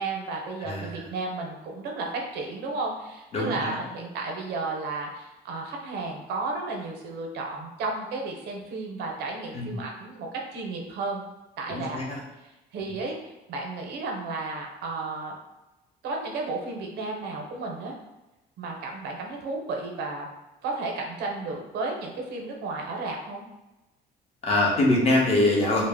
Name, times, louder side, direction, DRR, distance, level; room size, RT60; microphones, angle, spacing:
voice 1, 0.0-11.2 11.6-12.0 12.7-13.2 13.5-15.3 16.0-18.0 18.6-20.3 20.6-23.4, right 3 dB, 75° right, 1 dB, 0.6 m, -33 dB
voice 2, 0.6-1.0 3.3-3.8 9.5-9.8 11.7-12.2 24.4-25.9, left 1 dB, 35° left, -2 dB, 0.7 m, -24 dB
2.0 x 2.0 x 3.3 m, 1.0 s
cardioid pair, 110°, 17 cm